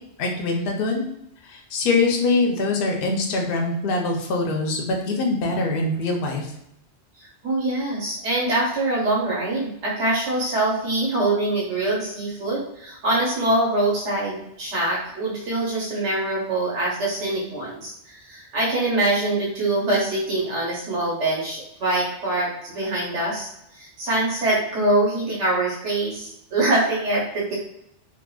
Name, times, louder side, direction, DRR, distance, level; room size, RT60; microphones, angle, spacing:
voice 1, 0.2-1.1 1.4-6.5, left 3 dB, 60° left, 1 dB, 0.7 m, -23 dB
voice 2, 7.4-23.5 23.7-27.5, right 2 dB, 90° right, -5 dB, 1.2 m, -24 dB
3.7 x 2.1 x 2.3 m, 0.79 s
omnidirectional pair, 1.2 m